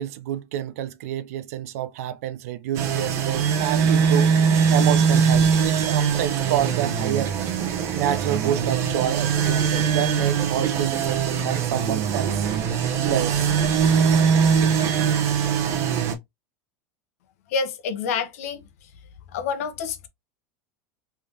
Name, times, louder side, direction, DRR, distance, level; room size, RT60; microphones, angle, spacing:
voice 1, 0.0-4.3 4.7-7.5 7.9-12.4 13.0-13.5, right 11 dB, 80° right, 0.5 m, -28 dB
sound 1, 2.7-16.1, right 6 dB, 35° right, 0.9 m, -22 dB
voice 2, 17.5-18.9 19.3-20.1, left 5 dB, 80° left, 0.9 m, -28 dB
3.6 x 3.3 x 2.8 m
supercardioid pair, 165°, 8 cm